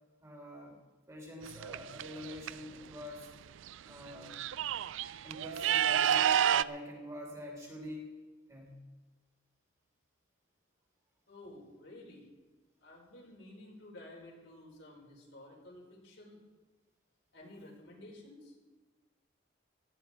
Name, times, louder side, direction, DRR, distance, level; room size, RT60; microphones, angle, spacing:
voice 1, 0.2-0.8 1.1-3.3 3.8-4.3 5.2-8.1 8.5-8.8, left 1 dB, 15° right, -2 dB, 3.5 m, -46 dB
sound 1, 1.4-2.5 3.7-3.8 4.1-6.6, right 9 dB, 70° right, 0.4 m, -29 dB
voice 2, 11.3-12.3 12.8-16.4 17.3-18.6, left 1 dB, 65° left, -3 dB, 5.1 m, -52 dB
18.0 x 13.5 x 4.6 m, 1.3 s
head